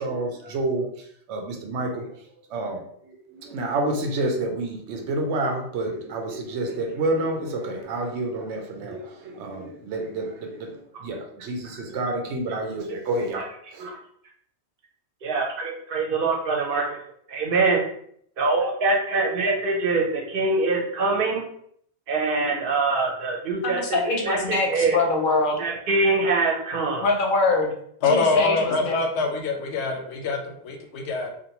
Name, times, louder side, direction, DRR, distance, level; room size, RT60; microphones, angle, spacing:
voice 1, 0.0-2.2 2.5-13.9, right 2 dB, 90° right, 2 dB, 0.9 m, -29 dB
voice 2, 15.2-16.8 17.3-17.8 18.4-21.4 22.1-25.0 25.6-27.1, right 3 dB, 60° right, 0 dB, 0.8 m, -24 dB
voice 3, 23.6-25.6 27.0-27.7 28.1-29.0, left 3 dB, 60° left, 1 dB, 0.7 m, -23 dB
voice 4, 28.0-31.3, left 3 dB, 80° left, 3 dB, 0.9 m, -24 dB
2.5 x 2.2 x 2.8 m, 0.67 s
omnidirectional pair, 1.1 m